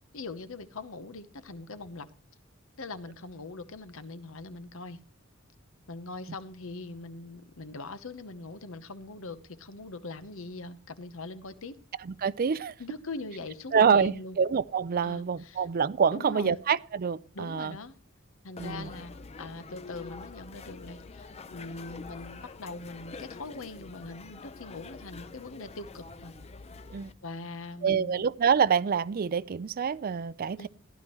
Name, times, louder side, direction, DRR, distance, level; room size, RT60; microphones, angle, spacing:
voice 1, 0.1-2.1 2.8-5.0 5.9-11.8 12.8-14.4 15.0-15.7 16.1-16.6 17.3-18.0 18.4-26.3 27.2-28.3 30.6-30.7, left 3 dB, 70° left, 1.0 m, -42 dB
voice 2, 12.2-12.7 13.7-17.8 18.6-18.9 26.9-27.1 27.8-30.7, right 6 dB, 45° right, 0.4 m, -26 dB
sound 1, 18.6-27.1, left 4 dB, 30° left, 0.6 m, -46 dB
14.5 x 11.5 x 3.1 m
head